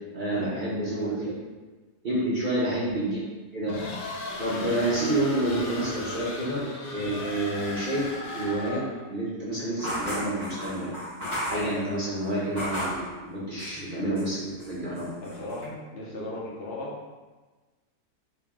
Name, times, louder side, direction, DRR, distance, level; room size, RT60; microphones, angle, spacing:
voice 1, 0.1-1.3 2.0-3.2 3.5-3.8 4.4-6.6 6.9-8.0 8.3-8.8 9.1-10.9 11.5-15.1, right 1 dB, 50° right, -8 dB, 0.6 m, -29 dB
sound 1, 3.7-9.0, left 2 dB, 90° left, 1.3 m, -36 dB
sound 2, 9.8-13.1 13.6-14.3 14.6-15.6, equal, 15° right, 1.1 m, -34 dB
voice 2, 15.2-17.0, left 1 dB, 45° left, -5 dB, 0.9 m, -36 dB
3.0 x 2.9 x 3.5 m, 1.3 s
omnidirectional pair, 1.8 m